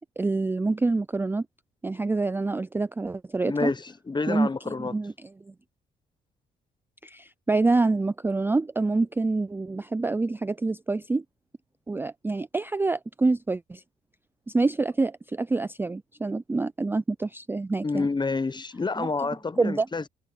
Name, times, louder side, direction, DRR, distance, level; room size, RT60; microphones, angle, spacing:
voice 1, 0.2-1.5 1.8-3.7 4.3-5.5 7.0-11.2 11.9-13.8 14.5-18.1 19.0-19.1 19.6-19.9, right 3 dB, 10° right, 0.3 m, -26 dB
voice 2, 3.5-5.0 17.8-20.1, left 4 dB, 20° left, 0.9 m, -29 dB
cardioid pair, 90°, 20 cm